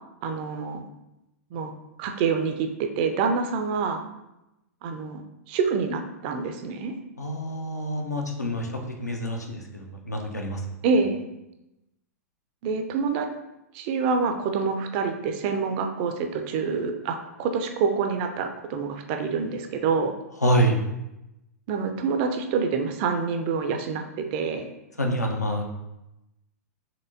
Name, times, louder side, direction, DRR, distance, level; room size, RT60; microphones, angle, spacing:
voice 1, 0.2-0.8 1.5-1.7 2.0-4.0 4.8-5.2 5.5-6.9 10.8-11.2 12.6-13.3 13.7-20.1 21.7-24.6, right 5 dB, 35° right, 5 dB, 0.4 m, -26 dB
voice 2, 7.2-8.7 9.0-10.6 20.4-20.8 25.0-25.6, equal, 85° left, 1 dB, 0.6 m, -26 dB
4.3 x 3.1 x 2.6 m, 0.93 s
figure-of-eight pair, 100°, 9 cm